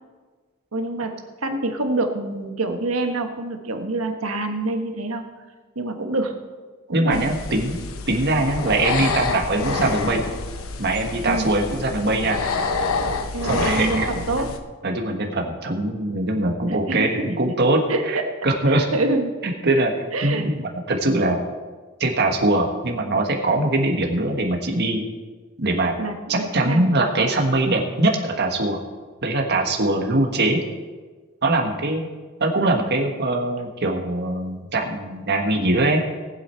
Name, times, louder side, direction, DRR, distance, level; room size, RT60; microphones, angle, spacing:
voice 1, 0.7-1.1 1.4-5.3 5.7-6.3 6.9-7.4 11.2-11.5 13.3-14.5 16.7-17.3 17.9-18.3 18.9-19.3 19.7-19.8 20.1-20.5 26.0-26.9, right 2 dB, 90° right, 5 dB, 1.3 m, -26 dB
voice 2, 6.9-7.8 8.1-10.2 10.8-12.4 13.4-14.1 14.3-14.4 14.8-17.8 18.0-18.9 19.4-19.9 20.2-21.4 22.0-25.0 25.6-25.9 26.3-28.8 29.2-30.6 31.4-32.1 32.4-36.0, right 2 dB, 55° right, 2 dB, 1.5 m, -22 dB
sound 1, 7.1-14.6, left 3 dB, 85° left, 0.9 m, -27 dB
19.0 x 7.8 x 4.5 m, 1.4 s
head